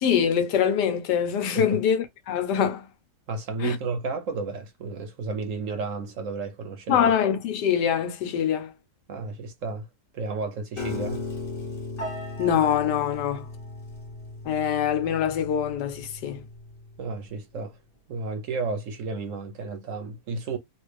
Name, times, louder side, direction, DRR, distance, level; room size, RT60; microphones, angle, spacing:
voice 1, 0.0-2.9 3.6-3.8 6.9-8.7 12.4-13.5 14.4-16.4, left 8 dB, 85° left, 1.3 m, -24 dB
voice 2, 3.3-7.1 9.1-9.9 10.1-11.2 17.0-17.8 18.1-20.6, right 3 dB, 60° right, 0.9 m, -32 dB
Piano, 10.8-17.0, left 2 dB, 40° left, 0.9 m, -36 dB
3.2 x 2.4 x 3.3 m
omnidirectional pair, 1.8 m